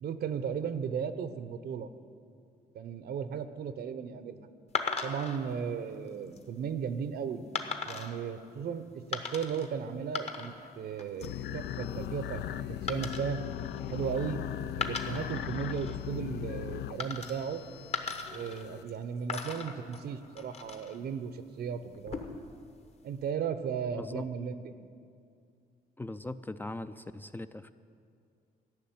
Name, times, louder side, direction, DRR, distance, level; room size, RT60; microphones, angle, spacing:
voice 1, 0.0-1.9 2.7-4.5 5.0-7.4 7.8-13.4 13.9-14.4 14.8-17.6 18.3-22.2 23.0-24.7, right 7 dB, 75° right, 11 dB, 0.7 m, -36 dB
sound 1, 4.7-5.4 6.1-6.4 7.5-8.1 9.1-9.7 10.0-10.7 11.0-11.4 12.9-14.3 14.7-16.0 17.0-17.6 17.9-19.0 19.3-21.0 21.9-22.5, left 4 dB, 40° left, 1.1 m, -38 dB
sound 2, 11.2-18.8, left 11 dB, 90° left, 0.4 m, -38 dB
voice 2, 23.9-24.3 26.0-27.7, left 2 dB, 10° left, 11 dB, 0.3 m, -40 dB
13.5 x 6.4 x 9.3 m, 2.3 s
cardioid pair, 110°, 17 cm